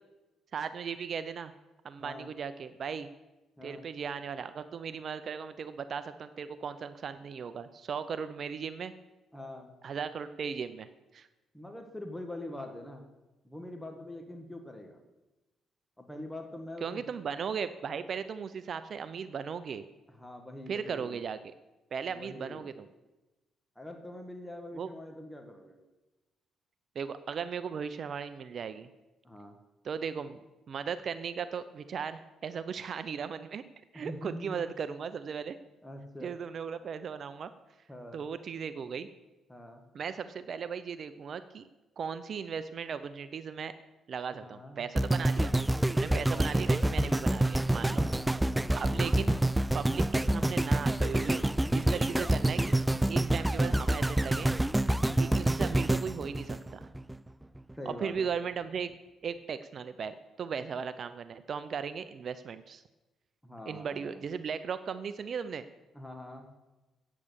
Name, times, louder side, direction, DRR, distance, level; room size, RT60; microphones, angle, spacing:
voice 1, 0.5-1.5 1.8-3.1 3.6-8.9 9.8-11.3 16.8-19.9 20.7-21.5 21.9-22.9 24.8-24.9 27.0-28.9 29.8-30.4 30.7-33.6 33.9-35.6 36.2-37.5 38.1-39.1 39.9-41.7 42.0-43.7 44.1-45.5 45.9-48.0 48.7-49.3 49.7-51.4 51.7-52.7 53.1-54.5 55.1-56.9 57.9-58.9 59.2-62.8 63.7-65.7, right 6 dB, 55° right, 12 dB, 0.6 m, -37 dB
voice 2, 2.0-2.3 3.6-3.8 9.3-9.7 11.5-13.0 13.4-15.0 16.0-17.1 20.1-21.2 22.1-22.7 23.7-25.8 29.2-29.6 33.9-34.7 35.8-36.3 37.9-38.3 39.5-39.8 44.3-44.8 45.1-45.4 46.1-46.6 47.8-49.0 52.1-52.4 55.1-55.4 57.7-58.3 63.4-64.2 65.9-66.5, left 1 dB, 5° left, 3 dB, 1.4 m, -44 dB
sound 1, 45.0-57.2 57.7-57.8, right 1 dB, 10° right, 0.3 m, -27 dB
8.7 x 8.5 x 6.9 m, 1.1 s
cardioid pair, 90°, 0 cm